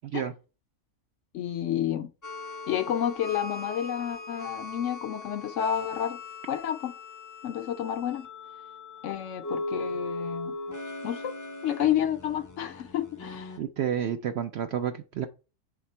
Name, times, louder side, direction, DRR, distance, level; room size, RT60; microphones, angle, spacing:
voice 1, 1.3-2.1 2.7-6.2 6.5-6.9 7.4-8.3 9.0-10.5 11.0-11.4 11.6-13.6, left 10 dB, 65° left, 0.8 m, -30 dB
sound 1, 2.2-13.6, left 3 dB, 20° left, 0.5 m, -39 dB
voice 2, 13.6-15.3, right 9 dB, 65° right, 0.7 m, -30 dB
7.9 x 3.6 x 4.2 m
omnidirectional pair, 1.5 m